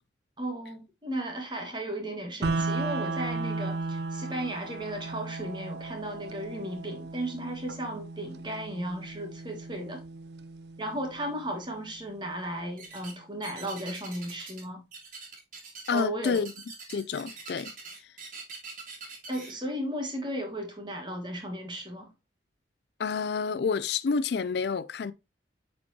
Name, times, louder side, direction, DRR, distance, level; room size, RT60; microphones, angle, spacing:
voice 1, 0.4-10.0 10.8-14.8 15.9-16.4 19.3-22.1, right 1 dB, 25° right, 1.6 m, -35 dB
sound 1, 2.4-12.4, right 3 dB, 70° right, 0.5 m, -36 dB
sound 2, 12.8-13.2 13.4-14.6 14.9-19.5, right 4 dB, 45° right, 2.3 m, -43 dB
voice 2, 15.9-16.5 16.9-17.7 23.0-25.1, left 5 dB, 65° left, 0.4 m, -29 dB
8.8 x 4.3 x 2.8 m
head